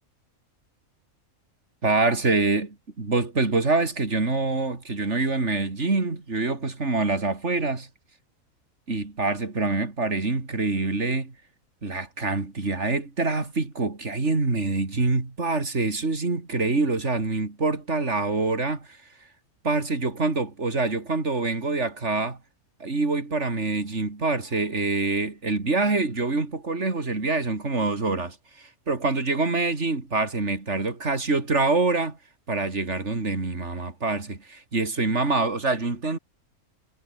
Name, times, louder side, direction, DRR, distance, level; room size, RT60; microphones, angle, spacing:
voice 1, 1.8-7.9 8.9-11.3 11.8-19.0 19.6-22.4 22.8-32.2 32.5-36.2, right 3 dB, 55° right, 3.6 m, -25 dB
omnidirectional pair, 1.4 m